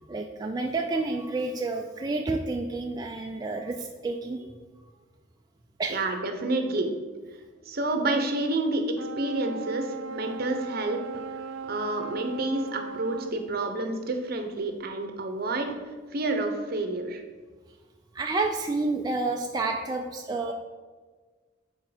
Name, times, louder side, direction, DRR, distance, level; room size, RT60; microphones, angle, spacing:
voice 1, 0.1-4.5 5.8-6.0 18.1-20.5, right 3 dB, 20° right, 2 dB, 0.4 m, -29 dB
voice 2, 5.9-6.9 7.7-8.8 9.2-11.0 11.7-15.7 16.1-17.2, right 2 dB, 55° right, 5 dB, 0.8 m, -29 dB
sound 1, 9.0-13.4, right 5 dB, 85° right, 0.4 m, -38 dB
7.3 x 4.4 x 4.9 m, 1.4 s
head